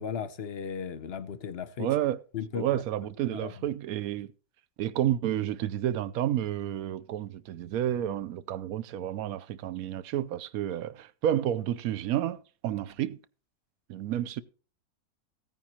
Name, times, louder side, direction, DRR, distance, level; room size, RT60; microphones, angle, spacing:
voice 1, 0.0-1.9 2.3-2.8 3.3-3.5, left 7 dB, 50° left, 0.9 m, -35 dB
voice 2, 1.8-2.2 2.5-4.3 4.8-13.2 13.9-14.4, right 11 dB, 70° right, 1.1 m, -30 dB
15.5 x 9.3 x 2.9 m
omnidirectional pair, 1.6 m